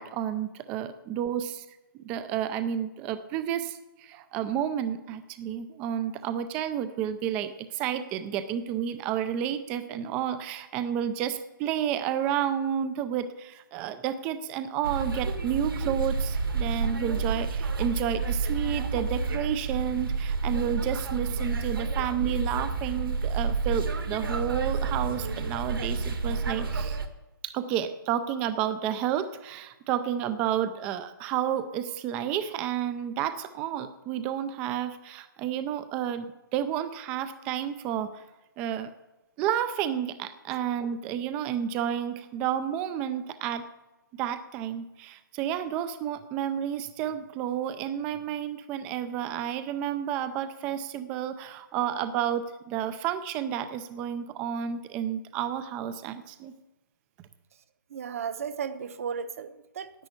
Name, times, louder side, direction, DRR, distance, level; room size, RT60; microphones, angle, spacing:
voice 1, 0.0-1.6 2.0-27.0 27.4-38.2 38.6-38.9 39.4-43.6 44.2-56.5, right 9 dB, 10° right, 11 dB, 0.4 m, -31 dB
sound 1, 14.8-27.1, right 4 dB, 70° right, 1.8 m, -30 dB
voice 2, 57.9-59.9, right 7 dB, 40° right, 12 dB, 0.9 m, -34 dB
10.5 x 8.7 x 8.2 m, 1.0 s
hypercardioid pair, 160°, 12 cm